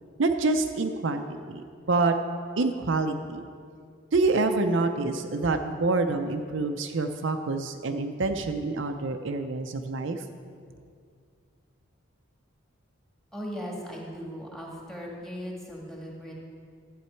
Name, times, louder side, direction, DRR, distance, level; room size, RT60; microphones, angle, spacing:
voice 1, 0.2-2.2 2.6-3.5 4.1-10.2, right 3 dB, 65° right, 6 dB, 0.5 m, -27 dB
voice 2, 13.3-16.4, equal, ahead, -2 dB, 1.6 m, -38 dB
12.5 x 8.6 x 4.5 m, 2.2 s
head